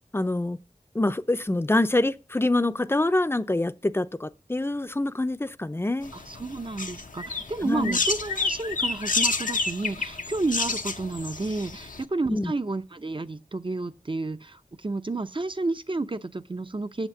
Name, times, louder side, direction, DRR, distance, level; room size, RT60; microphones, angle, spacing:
voice 1, 0.1-0.6 0.9-6.1 7.6-8.0 12.3-12.5, left 2 dB, 15° left, 0.6 m, -25 dB
sound 1, 6.0-12.0, left 3 dB, 80° left, 0.9 m, -29 dB
voice 2, 6.3-17.1, right 3 dB, 40° right, 0.7 m, -31 dB
8.2 x 7.3 x 7.3 m
wide cardioid pair, 60°, 13 cm